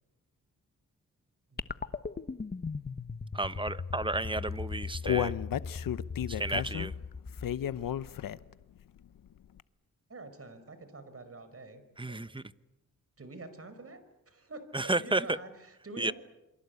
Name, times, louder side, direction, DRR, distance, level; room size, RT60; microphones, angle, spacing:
voice 1, 1.5-1.9 10.1-12.2 13.2-16.1, right 3 dB, 45° right, 11 dB, 5.3 m, -47 dB
sound 1, 1.6-8.1, left 5 dB, 30° left, 1.1 m, -39 dB
voice 2, 3.3-5.3 6.3-6.9 12.0-12.4 14.7-15.4 16.0-16.1, right 2 dB, 15° right, 14 dB, 1.1 m, -32 dB
Human voice, 4.4-8.6 9.0-9.1 9.6-9.7, left 10 dB, 75° left, 0.9 m, -33 dB
28.5 x 23.0 x 8.4 m, 0.96 s
cardioid pair, 65°, 34 cm